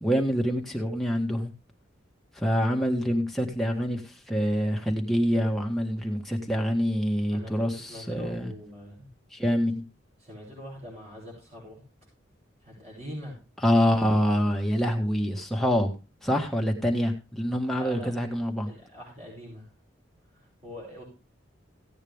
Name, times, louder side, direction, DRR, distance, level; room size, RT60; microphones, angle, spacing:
voice 1, 0.0-1.5 2.3-8.5 9.3-9.8 13.6-15.9 16.2-18.7, equal, ahead, 1 dB, 1.6 m, -26 dB
voice 2, 7.3-9.1 10.2-11.8 12.6-13.4 17.7-18.1 18.6-19.7 20.3-21.0, equal, 35° right, -3 dB, 6.8 m, -43 dB
16.0 x 8.8 x 3.5 m, 0.29 s
head